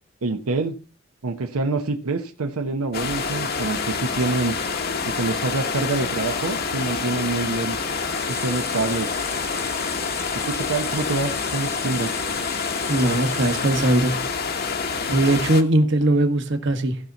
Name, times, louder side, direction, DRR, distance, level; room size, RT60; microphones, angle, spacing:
voice 1, 0.2-0.8 1.2-4.6 5.1-7.8 8.3-9.1 10.3-12.1, right 3 dB, 85° right, 0.8 m, -26 dB
sound 1, 2.9-15.6, left 5 dB, 45° left, 1.0 m, -27 dB
sound 2, 8.1-14.4 14.8-14.9 15.2-15.3, left 4 dB, 10° left, 0.7 m, -38 dB
voice 2, 12.9-14.2 15.1-17.0, right 1 dB, 55° right, 1.3 m, -20 dB
16.0 x 5.8 x 4.0 m
head